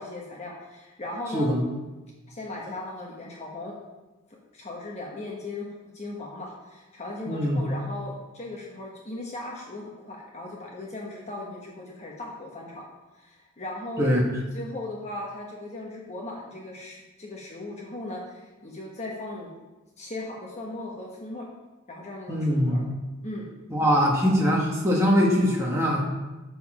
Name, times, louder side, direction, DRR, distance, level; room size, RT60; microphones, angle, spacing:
voice 1, 0.0-1.5 2.3-3.7 4.5-5.7 5.9-12.8 13.1-14.1 14.5-19.5 20.0-21.5 21.9-22.9 23.2-23.5, left 2 dB, 30° left, -2 dB, 1.2 m, -37 dB
voice 2, 7.3-7.6 14.0-14.2 22.3-22.8 23.7-26.0, equal, 15° right, -3 dB, 1.2 m, -22 dB
7.8 x 6.9 x 4.9 m, 1.1 s
head